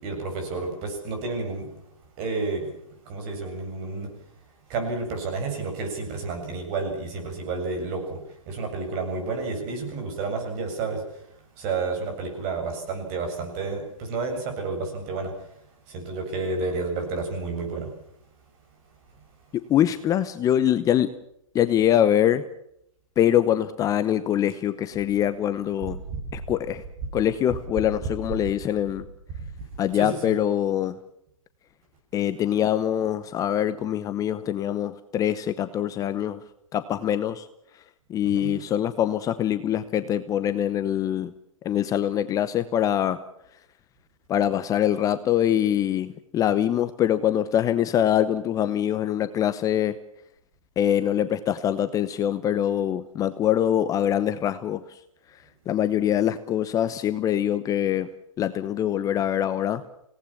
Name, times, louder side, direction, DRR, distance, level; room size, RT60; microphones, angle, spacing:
voice 1, 0.0-1.7 2.2-2.7 3.0-4.1 4.7-11.2 11.6-15.4 15.9-17.9 26.1-26.3 29.9-30.3 38.3-38.6, right 3 dB, 35° right, 4 dB, 7.9 m, -30 dB
voice 2, 19.5-21.1 21.5-22.4 23.2-26.0 26.3-26.8 27.1-29.1 29.8-31.0 32.1-36.4 36.7-37.5 37.7-37.8 38.1-41.3 41.6-43.2 44.3-49.9 50.8-55.0 55.3-58.1 58.4-59.8, left 10 dB, 20° left, 12 dB, 0.8 m, -24 dB
25.5 x 18.0 x 7.4 m, 0.77 s
hypercardioid pair, 130°, 17 cm